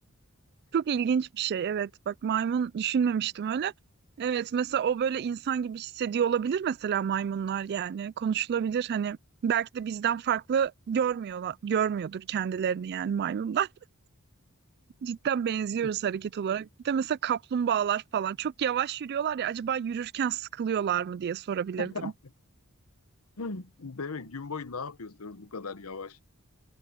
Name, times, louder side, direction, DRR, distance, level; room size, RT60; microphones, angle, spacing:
voice 1, 0.7-3.7 4.2-9.2 9.4-13.7 15.0-22.1, right 8 dB, 50° right, 0.3 m, -29 dB
voice 2, 21.8-22.1 23.4-26.2, left 4 dB, 75° left, 1.0 m, -37 dB
head